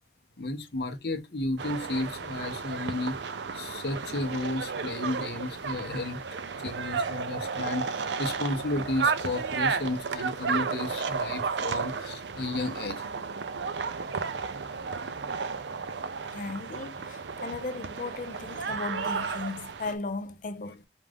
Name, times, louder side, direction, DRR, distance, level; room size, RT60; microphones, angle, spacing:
voice 1, 0.4-3.2 3.5-13.1 14.3-14.4 15.7-15.8 16.2-16.4, left 2 dB, 65° left, 1.0 m, -33 dB
sound 1, 1.6-19.9, right 5 dB, 80° right, 0.5 m, -33 dB
voice 2, 16.3-20.8, left 3 dB, 45° left, 0.5 m, -36 dB
5.1 x 2.5 x 3.4 m
head